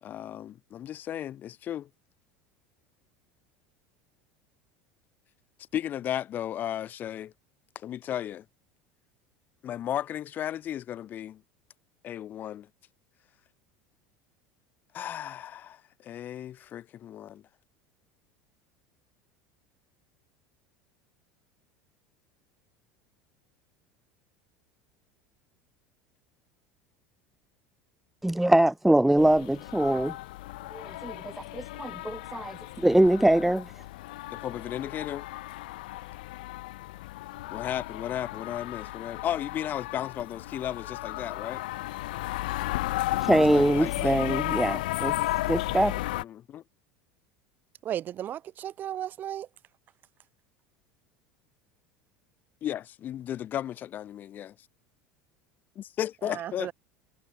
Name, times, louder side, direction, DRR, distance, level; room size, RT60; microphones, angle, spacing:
voice 1, 0.0-1.9 5.7-7.3 7.8-8.5 9.6-11.4 12.0-12.7 14.9-17.4 34.3-35.3 37.5-41.6 43.4-44.2 46.1-46.6 52.6-54.6 55.8-56.7, left 11 dB, 40° left, 1.6 m, -35 dB
voice 2, 28.2-30.1 30.7-33.7 43.1-45.2 45.5-45.9, right 1 dB, 5° right, 0.6 m, -23 dB
sound 1, 29.2-46.2, left 18 dB, 85° left, 1.4 m, -34 dB
voice 3, 47.8-49.5 56.2-56.7, right 11 dB, 40° right, 1.9 m, -35 dB
supercardioid pair, 110°, 5 cm